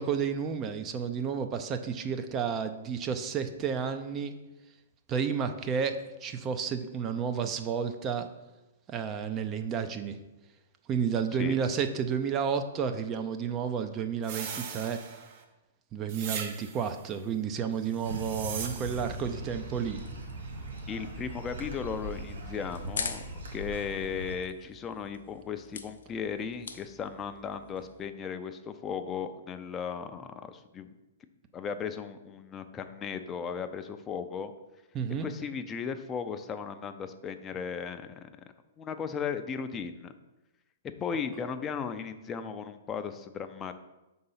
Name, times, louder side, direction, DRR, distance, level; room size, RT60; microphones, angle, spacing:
voice 1, 0.0-4.3 5.1-8.3 8.9-10.2 10.9-15.0 15.9-20.0 34.9-35.3, right 7 dB, 25° right, 8 dB, 0.5 m, -31 dB
sound 1, 14.2-15.4 16.1-17.0 17.9-19.2, right 7 dB, 45° right, 0.9 m, -39 dB
sound 2, 18.0-24.4, right 1 dB, 80° right, 1.4 m, -40 dB
sound 3, 19.5-28.1, left 5 dB, 80° left, 0.6 m, -45 dB
voice 2, 20.9-30.9 31.5-34.5 35.2-38.3 38.8-40.1 41.0-43.7, left 6 dB, 20° left, 8 dB, 0.5 m, -36 dB
5.5 x 3.9 x 5.6 m, 1.0 s
hypercardioid pair, 130°, 0 cm